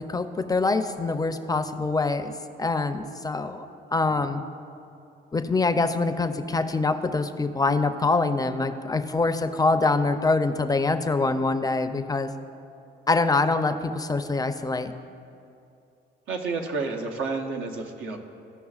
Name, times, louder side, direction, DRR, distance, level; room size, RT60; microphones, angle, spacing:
voice 1, 0.0-2.3 2.6-3.7 3.9-4.4 5.3-12.3 13.1-14.9, left 3 dB, 20° left, 8 dB, 0.4 m, -24 dB
voice 2, 16.3-18.2, right 4 dB, 85° right, 3 dB, 0.9 m, -30 dB
15.5 x 5.4 x 2.4 m, 2.6 s
cardioid pair, 90°, 20 cm